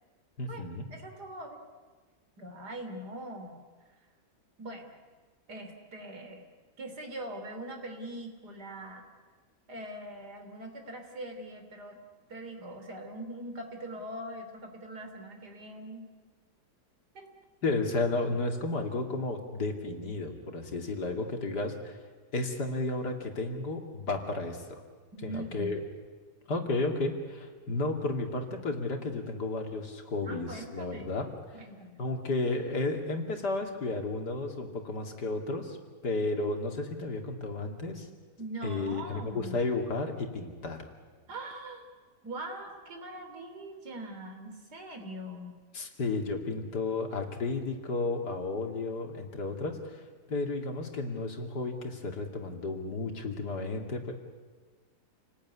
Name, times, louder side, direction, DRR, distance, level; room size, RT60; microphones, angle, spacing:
voice 1, 0.4-0.9 17.6-22.0 22.3-24.8 25.2-25.8 26.5-31.3 32.0-35.8 36.0-38.1 38.6-40.9 45.7-54.1, left 3 dB, 85° left, 4 dB, 3.1 m, -33 dB
voice 2, 0.9-1.6 2.4-3.6 4.6-4.9 5.5-6.5 6.8-9.1 9.7-12.0 12.3-16.1 17.1-17.3 25.1-25.8 30.2-31.1 31.5-32.0 38.4-39.6 41.3-41.8 42.2-45.6, right 1 dB, 80° right, 5 dB, 3.7 m, -42 dB
28.5 x 19.0 x 9.7 m, 1.4 s
omnidirectional pair, 1.7 m